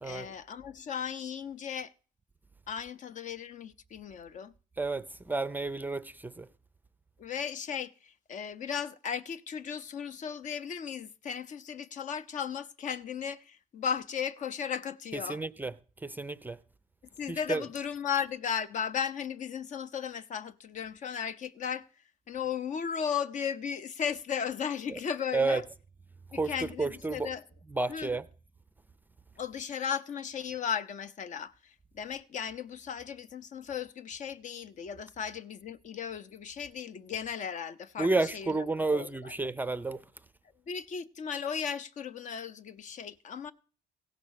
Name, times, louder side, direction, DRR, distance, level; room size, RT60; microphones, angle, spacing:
voice 1, 0.0-1.9 2.7-4.5 7.2-15.4 17.2-21.8 22.3-25.6 26.3-27.4 27.9-28.1 29.4-38.6 38.9-39.3 40.7-43.5, left 7 dB, 50° left, 0.7 m, -36 dB
voice 2, 4.8-6.5 15.1-15.7 16.0-16.6 17.3-17.6 24.9-25.0 25.3-25.6 26.3-27.3 27.7-28.2 38.0-40.0, right 3 dB, 10° right, 0.5 m, -31 dB
16.0 x 5.9 x 6.4 m
cardioid pair, 110°, 17 cm